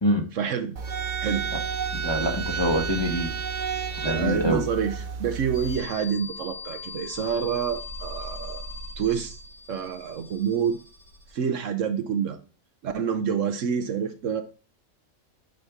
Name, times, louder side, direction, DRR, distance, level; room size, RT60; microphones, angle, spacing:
voice 1, 0.3-0.8 1.2-1.5 4.0-8.6 9.0-9.4 9.7-10.8 11.3-12.4 12.8-14.4, right 7 dB, 65° right, 1.1 m, -27 dB
sound 1, 0.8-5.8, right 6 dB, 45° right, 0.7 m, -31 dB
voice 2, 1.9-3.3 4.0-4.6, equal, 20° left, 1.1 m, -25 dB
sound 2, 5.5-11.4, left 3 dB, 65° left, 2.6 m, -40 dB
9.0 x 4.3 x 3.5 m
omnidirectional pair, 1.5 m